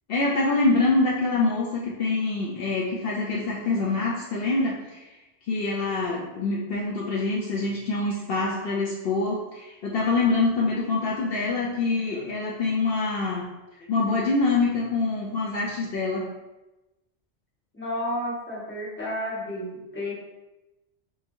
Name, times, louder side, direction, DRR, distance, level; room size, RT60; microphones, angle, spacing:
voice 1, 0.1-5.1 5.5-13.5 13.9-16.3, left 3 dB, 65° left, -4 dB, 0.7 m, -25 dB
voice 2, 17.7-20.1, left 1 dB, 10° left, -7 dB, 0.9 m, -31 dB
3.8 x 2.9 x 2.6 m, 1.0 s
omnidirectional pair, 1.1 m